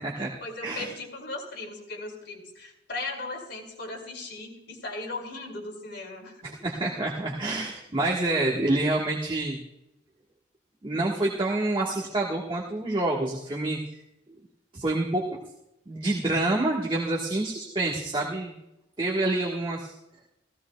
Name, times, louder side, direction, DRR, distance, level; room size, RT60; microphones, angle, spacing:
voice 1, 0.1-6.4, left 2 dB, 65° left, -3 dB, 3.3 m, -37 dB
voice 2, 6.4-9.6 10.8-13.8 14.7-15.4 15.9-18.6 19.0-19.9, right 2 dB, 30° right, -3 dB, 1.4 m, -27 dB
18.5 x 15.5 x 2.3 m, 0.89 s
head